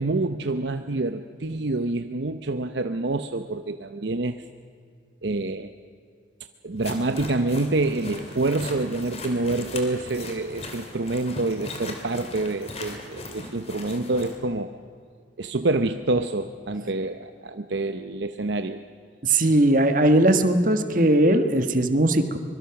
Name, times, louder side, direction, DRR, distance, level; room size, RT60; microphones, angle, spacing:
voice 1, 0.0-4.4 5.2-5.7 6.6-14.8 15.4-18.8, right 2 dB, 65° right, 8 dB, 0.8 m, -27 dB
sound 1, 6.8-14.4, left 2 dB, 35° left, 2.9 m, -38 dB
voice 2, 19.2-22.4, right 1 dB, 45° right, 7 dB, 1.6 m, -19 dB
24.5 x 23.0 x 6.0 m, 2.2 s
head